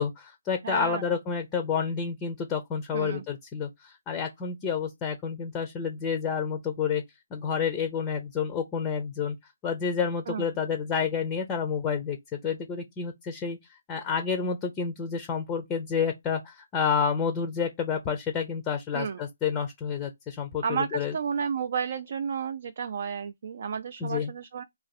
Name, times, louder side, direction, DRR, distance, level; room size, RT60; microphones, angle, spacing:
voice 1, 0.0-7.0 7.3-9.4 9.6-13.6 13.9-21.1 24.0-24.3, left 6 dB, 20° left, 0.5 m, -29 dB
voice 2, 0.6-1.0 2.9-3.2 10.3-10.4 18.9-19.2 20.6-24.6, right 6 dB, 50° right, 0.3 m, -31 dB
2.6 x 2.5 x 4.0 m
figure-of-eight pair, 145°, 0 cm